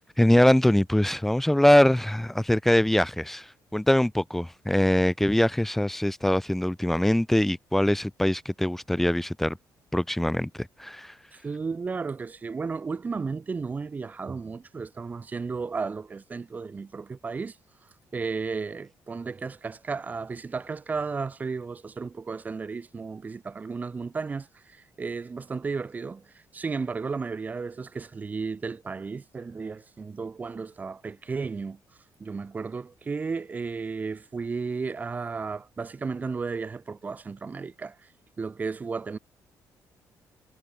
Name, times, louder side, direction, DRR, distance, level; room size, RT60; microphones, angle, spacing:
voice 1, 0.2-9.6 9.9-11.1, left 1 dB, 5° left, 1.5 m, -23 dB
voice 2, 11.3-17.6 18.1-31.8 32.2-38.1 38.4-39.2, right 4 dB, 25° right, 5.2 m, -34 dB
cardioid pair, 175°, 7 cm